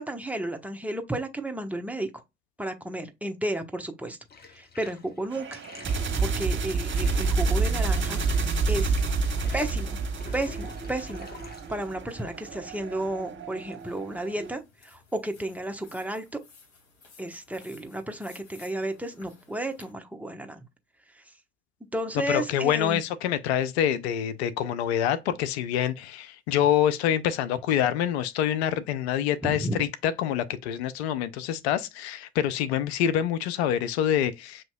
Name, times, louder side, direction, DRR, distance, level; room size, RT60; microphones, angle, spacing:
voice 1, 0.0-2.1 2.6-4.2 4.5-5.6 6.2-8.2 8.7-8.9 9.5-10.0 10.3-11.3 11.7-16.4 17.2-20.6 21.2-21.3 21.9-23.0 29.4-29.8, right 1 dB, 5° right, 1.0 m, -32 dB
Bathtub (filling or washing), 4.2-15.9, left 4 dB, 30° left, 1.0 m, -49 dB
sound 1, 5.3-14.5, right 3 dB, 35° right, 1.4 m, -28 dB
sound 2, 13.8-19.9, left 4 dB, 60° left, 2.6 m, -56 dB
voice 2, 22.3-34.6, left 10 dB, 75° left, 0.5 m, -26 dB
7.4 x 2.8 x 2.3 m
hypercardioid pair, 55°, 32 cm